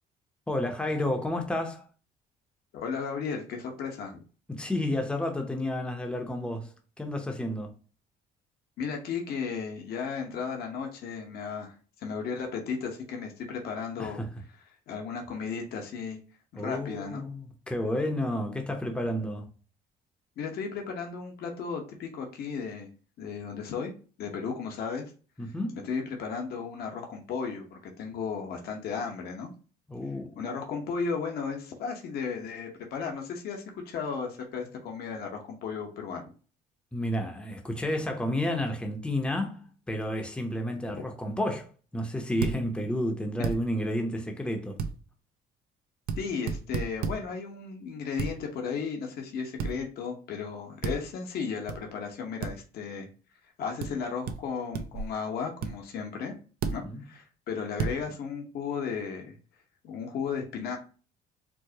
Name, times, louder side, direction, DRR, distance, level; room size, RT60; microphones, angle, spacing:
voice 1, 0.5-1.9 4.5-7.7 14.0-14.3 16.6-19.5 25.4-25.8 29.9-30.3 36.9-44.8 56.8-57.0, left 1 dB, 5° left, 0.7 m, -31 dB
voice 2, 2.7-4.2 8.8-14.2 14.9-16.2 16.5-17.2 20.4-22.9 23.2-23.9 24.2-25.1 25.4-29.5 30.4-36.3 40.9-41.1 46.2-56.3 56.7-60.8, left 5 dB, 65° left, 1.0 m, -35 dB
sound 1, 42.4-42.6 43.4-43.6 44.8-44.9 46.1-46.2 46.5-47.2 48.2-48.3 49.6-49.8 50.8-51.0 51.7-51.8 52.4-52.5 53.8-53.9 54.3-54.4 54.7-55.1 55.6-55.7 56.6-56.8 57.8-58.0, right 5 dB, 60° right, 0.5 m, -30 dB
4.6 x 2.1 x 2.7 m
cardioid pair, 110°, 17 cm